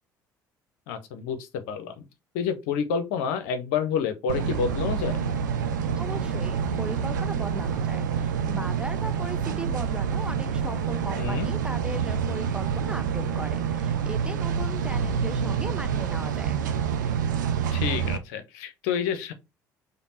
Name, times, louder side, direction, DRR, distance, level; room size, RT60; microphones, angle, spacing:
voice 1, 0.9-2.0 2.3-5.2 11.2-11.5 17.7-19.3, left 7 dB, 60° left, 0.7 m, -29 dB
sound 1, 4.3-18.2, right 7 dB, 75° right, 0.4 m, -27 dB
voice 2, 6.0-16.5, right 2 dB, 10° right, 0.6 m, -37 dB
5.1 x 2.1 x 4.1 m
figure-of-eight pair, 55°, 10 cm